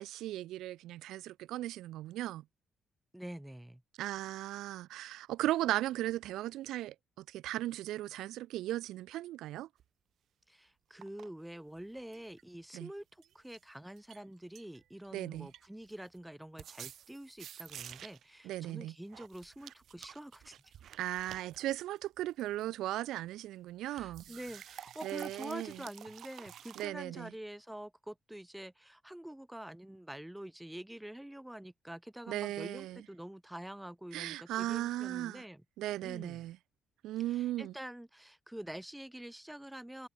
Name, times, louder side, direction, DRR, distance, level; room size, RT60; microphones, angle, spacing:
voice 1, 0.0-2.4 4.0-9.7 12.7-12.9 15.1-15.5 18.4-18.9 21.0-24.2 25.0-25.8 26.8-27.3 32.3-33.0 34.1-35.4 35.8-36.6 37.0-37.7, right 14 dB, 85° right, 0.6 m, -37 dB
voice 2, 3.1-3.8 10.5-20.7 23.9-35.6 36.0-36.4 37.3-40.1, right 1 dB, 5° right, 6.0 m, -46 dB
sound 1, 9.8-9.9 11.0-11.3 11.8-12.4 13.2-13.6 14.0-14.2 14.5-15.1 15.3-16.2 16.6-18.3 19.1-22.6 24.0-26.9, right 10 dB, 70° right, 2.4 m, -51 dB
cardioid pair, 90°, 0 cm